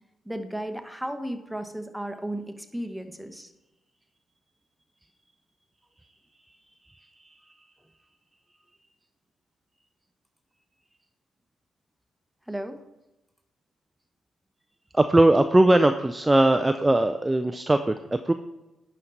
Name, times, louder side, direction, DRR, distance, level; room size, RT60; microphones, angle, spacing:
voice 1, 0.2-3.5 12.5-12.8, right 1 dB, ahead, 7 dB, 1.0 m, -34 dB
voice 2, 6.9-7.4 14.9-18.3, right 1 dB, 20° right, 8 dB, 0.4 m, -20 dB
10.5 x 4.3 x 4.0 m, 0.99 s
hypercardioid pair, 40°, 0 cm